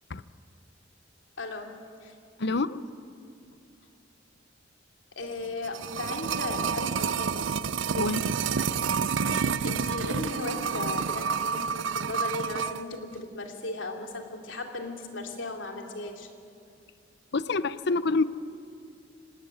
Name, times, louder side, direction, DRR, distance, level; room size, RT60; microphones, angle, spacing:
voice 1, 1.4-2.1 5.2-7.4 9.3-16.3, left 2 dB, 80° left, 3 dB, 2.9 m, -36 dB
voice 2, 2.4-2.8 7.9-8.3 17.3-18.2, left 3 dB, 65° left, 14 dB, 0.8 m, -26 dB
sound 1, 5.4-12.8 13.1-13.2, right 6 dB, 75° right, 0.6 m, -29 dB
25.5 x 18.5 x 9.7 m, 2.4 s
head